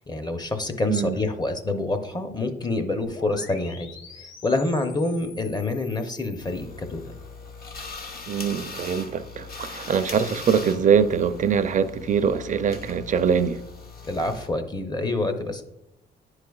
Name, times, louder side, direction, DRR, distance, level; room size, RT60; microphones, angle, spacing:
voice 1, 0.1-3.9 4.2-7.0 14.1-15.6, left 2 dB, 20° left, 0.7 m, -27 dB
sound 1, 3.0-6.6, left 4 dB, 70° left, 1.0 m, -46 dB
sound 2, 6.4-14.5, left 4 dB, 50° left, 0.9 m, -40 dB
voice 2, 8.3-13.6, right 7 dB, 40° right, 0.4 m, -23 dB
10.0 x 4.8 x 2.3 m
cardioid pair, 90°, 20 cm